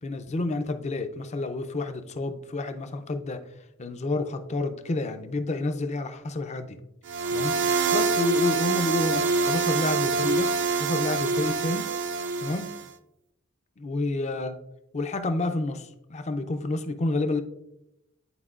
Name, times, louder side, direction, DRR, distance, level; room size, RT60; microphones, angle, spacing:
voice 1, 0.0-3.4 3.8-6.8 7.3-7.5 7.9-11.9 12.4-12.7 13.8-14.6 14.9-17.4, left 2 dB, 35° left, 8 dB, 0.4 m, -29 dB
sound 1, 7.1-12.9, right 4 dB, 60° right, 0.4 m, -25 dB
10.0 x 4.4 x 2.4 m, 0.88 s
head